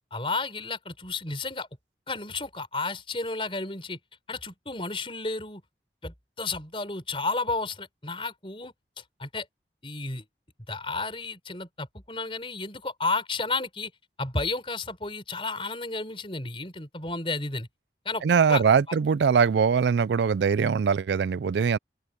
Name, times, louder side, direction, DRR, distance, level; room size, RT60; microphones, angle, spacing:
voice 1, 0.0-1.7 2.1-4.0 4.3-5.6 6.0-9.5 9.8-10.2 10.7-13.9 14.2-17.7 18.0-18.2 18.5-19.0, left 3 dB, 30° left, 4.6 m, -32 dB
voice 2, 18.2-21.8, right 6 dB, 80° right, 0.4 m, -22 dB
open air
head